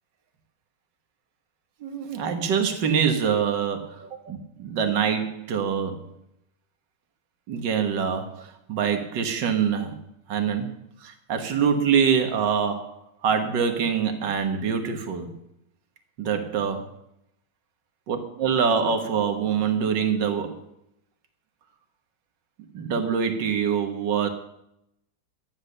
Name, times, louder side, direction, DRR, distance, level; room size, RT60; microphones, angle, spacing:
voice 1, 1.8-6.1 7.5-10.0 10.3-10.7 11.0-15.3 16.2-16.9 18.1-20.6 22.7-24.3, right 7 dB, 75° right, 6 dB, 2.0 m, -25 dB
13.0 x 10.0 x 6.6 m, 0.79 s
omnidirectional pair, 1.9 m